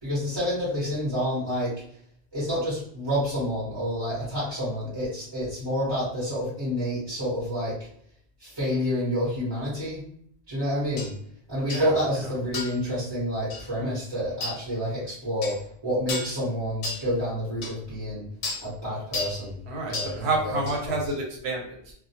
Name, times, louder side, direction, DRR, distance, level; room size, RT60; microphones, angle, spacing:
voice 1, 0.0-1.7 2.3-7.9 8.4-10.0 10.5-11.1 11.5-15.6 15.8-18.3 18.6-19.6 19.9-20.6 20.8-20.9, equal, 25° right, -11 dB, 0.9 m, -28 dB
sound 1, 11.0-11.1 11.7-11.9 12.5-12.8 13.5-13.7 14.4-14.6 15.4-15.6 16.1-16.3 16.8-17.0 17.6-17.7 18.4-18.6 19.1-19.4 19.9-20.1 20.7-20.8, left 3 dB, 90° left, 0.9 m, -32 dB
voice 2, 19.7-21.9, right 2 dB, 85° right, 0 dB, 1.0 m, -29 dB
2.2 x 2.1 x 2.7 m, 0.65 s
omnidirectional pair, 1.1 m